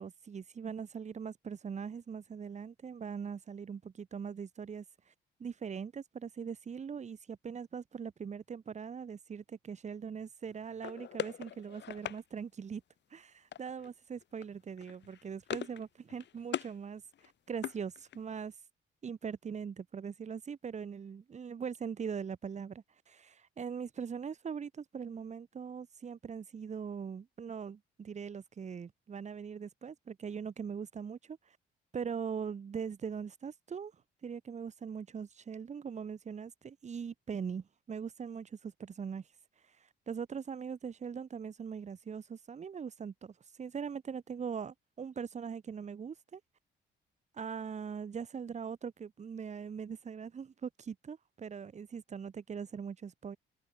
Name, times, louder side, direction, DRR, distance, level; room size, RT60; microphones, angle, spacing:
voice 1, 0.0-4.8 5.4-12.8 13.1-17.0 17.5-18.5 19.0-31.4 31.9-33.9 34.2-39.2 40.1-46.4 47.3-53.4, right 6 dB, 35° right, 0.9 m, -41 dB
sound 1, 10.8-12.2 13.5-13.9 14.2-14.5 14.8-15.8 16.1-16.7 17.1-18.4, left 10 dB, 65° left, 1.9 m, -41 dB
cardioid pair, 90°, 20 cm